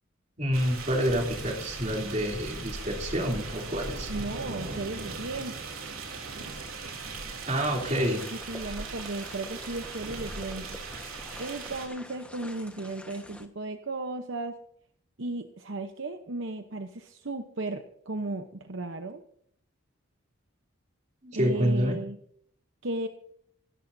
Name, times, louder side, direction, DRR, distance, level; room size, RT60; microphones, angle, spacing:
voice 1, 0.4-4.1 7.5-8.2 21.2-22.0, equal, 35° right, 1 dB, 3.2 m, -28 dB
sound 1, 0.5-11.9, right 3 dB, 80° right, 3.5 m, -39 dB
voice 2, 4.1-5.7 8.3-10.8 11.4-14.6 15.2-19.2 21.3-22.2 22.8-23.1, right 2 dB, 60° right, 7 dB, 0.9 m, -35 dB
sound 2, 7.8-13.5, left 1 dB, 5° left, 1.3 m, -47 dB
27.0 x 13.0 x 2.7 m, 0.67 s
head